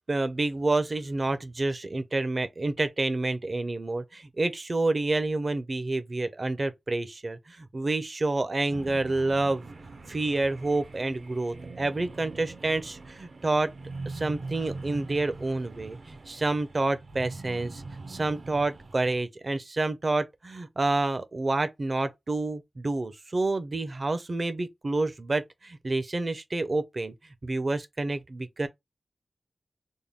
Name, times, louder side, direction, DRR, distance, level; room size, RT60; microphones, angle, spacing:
voice 1, 0.1-9.7 10.1-13.7 14.1-17.8 18.1-27.1 27.4-28.7, right 2 dB, 45° right, 0.6 m, -28 dB
sound 1, 8.7-19.2, right 3 dB, 75° right, 0.8 m, -42 dB
3.6 x 2.2 x 3.5 m
wide cardioid pair, 100°, 0 cm